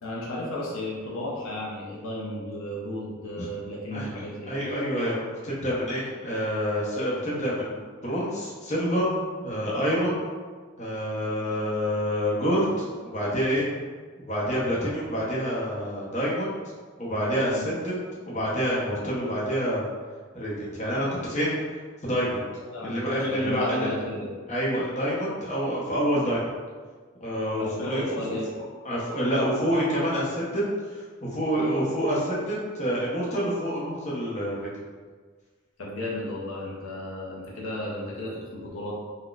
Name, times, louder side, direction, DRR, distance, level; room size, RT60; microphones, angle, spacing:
voice 1, 0.0-4.5 17.5-17.7 22.6-24.3 27.6-28.5 35.8-38.9, left 1 dB, 75° left, -4 dB, 0.5 m, -34 dB
voice 2, 3.9-9.1 9.4-10.2 10.8-13.7 14.3-16.5 17.0-19.8 20.3-21.6 22.0-22.4 22.8-23.9 24.5-26.5 27.2-28.0 28.3-28.4 28.8-34.7, equal, 35° left, -6 dB, 0.7 m, -27 dB
3.9 x 2.1 x 2.3 m, 1.5 s
head